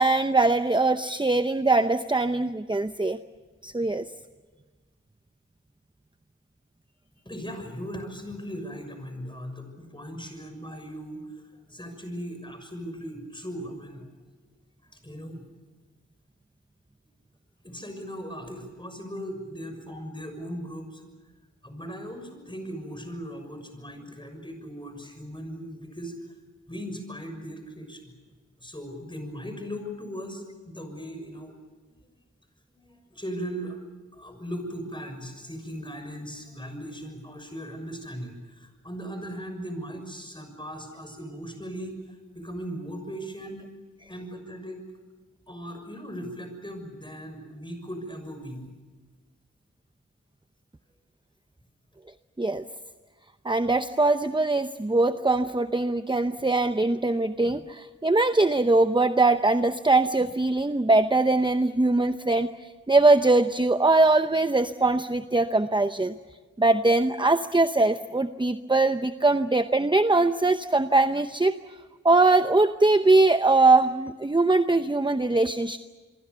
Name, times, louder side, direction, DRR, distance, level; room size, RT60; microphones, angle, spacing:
voice 1, 0.0-3.2 3.6-4.1 52.4-52.6 53.4-66.2 66.6-71.6 72.0-75.8, right 2 dB, 15° right, 10 dB, 0.8 m, -22 dB
voice 2, 7.2-11.4 11.7-14.1 14.9-15.5 17.6-21.0 21.6-26.1 26.7-28.1 28.6-31.5 32.7-33.8 34.1-42.0 42.3-43.7 44.1-44.8 45.5-48.7, equal, 15° left, 6 dB, 6.5 m, -38 dB
27.0 x 23.5 x 6.9 m, 1.4 s
wide cardioid pair, 65°, 30 cm